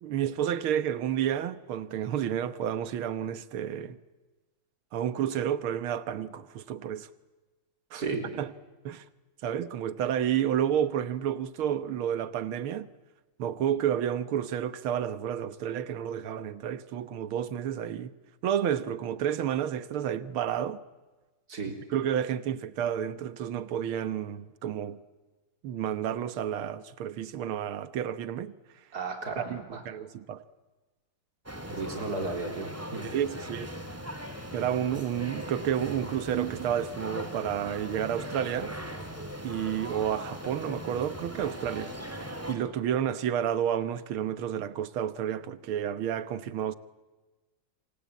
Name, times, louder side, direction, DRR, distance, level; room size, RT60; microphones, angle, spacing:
voice 1, 0.0-4.0 4.9-7.1 7.9-8.0 8.3-8.5 8.9-9.0 9.4-12.9 13.4-18.1 18.4-20.8 21.9-25.0 25.6-28.5 29.4-30.4 33.0-33.7 34.5-38.7 39.4-41.9 42.5-46.7, right 9 dB, 85° right, 2.0 m, -30 dB
voice 2, 7.9-8.2 21.5-21.7 28.9-29.8 31.7-33.0, right 3 dB, 45° right, 4.3 m, -34 dB
sound 1, 31.5-42.5, equal, 5° right, 2.4 m, -39 dB
27.5 x 24.5 x 8.5 m
omnidirectional pair, 2.3 m